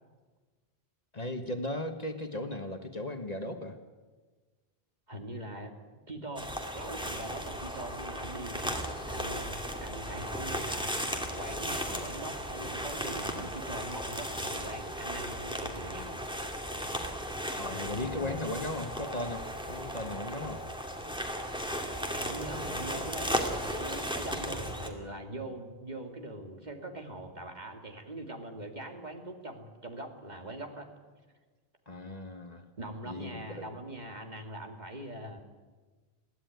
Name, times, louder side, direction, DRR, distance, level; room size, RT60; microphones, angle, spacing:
voice 1, 1.1-3.8 17.6-20.6 31.9-32.6 33.0-33.8, left 2 dB, 40° left, 6 dB, 1.4 m, -37 dB
voice 2, 5.1-5.7 6.1-16.5 17.7-18.4 22.1-30.9 32.8-35.4, right 1 dB, 45° right, 4 dB, 2.4 m, -42 dB
sound 1, 6.4-24.9, equal, 5° right, 2.4 m, -36 dB
22.5 x 16.0 x 9.3 m, 1.3 s
omnidirectional pair, 1.1 m